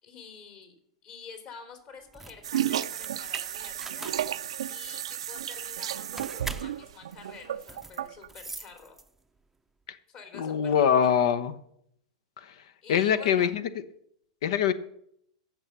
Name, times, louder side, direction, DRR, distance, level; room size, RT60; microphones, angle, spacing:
voice 1, 0.0-0.7 1.0-4.2 4.7-9.0 10.1-11.2 12.8-13.5, left 5 dB, 45° left, 3.3 m, -48 dB
sound 1, 2.0-9.4, right 3 dB, 5° right, 0.6 m, -43 dB
sound 2, 2.4-8.3, right 11 dB, 75° right, 0.5 m, -33 dB
voice 2, 10.3-11.5 12.4-12.5 12.9-13.6 14.4-14.7, left 8 dB, 65° left, 0.8 m, -23 dB
15.0 x 6.3 x 5.8 m
hypercardioid pair, 105°, 3 cm